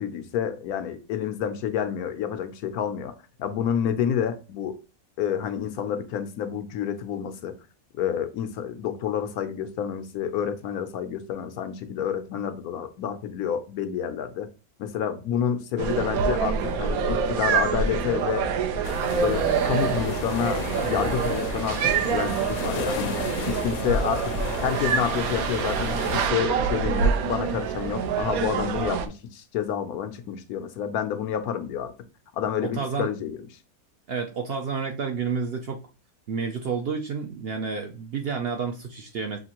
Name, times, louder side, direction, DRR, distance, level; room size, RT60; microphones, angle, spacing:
voice 1, 0.0-3.1 3.4-4.8 5.2-7.5 8.0-14.5 14.8-18.5 19.2-23.2 23.5-24.4 24.6-31.9 32.3-33.4, left 8 dB, 90° left, 1.1 m, -29 dB
sound 1, 15.8-29.1, right 6 dB, 80° right, 1.1 m, -26 dB
sound 2, 18.8-26.3, left 6 dB, 65° left, 0.9 m, -34 dB
voice 2, 32.8-33.1 34.1-35.9 36.3-39.4, right 5 dB, 65° right, 0.6 m, -30 dB
6.2 x 2.5 x 2.9 m
omnidirectional pair, 1.5 m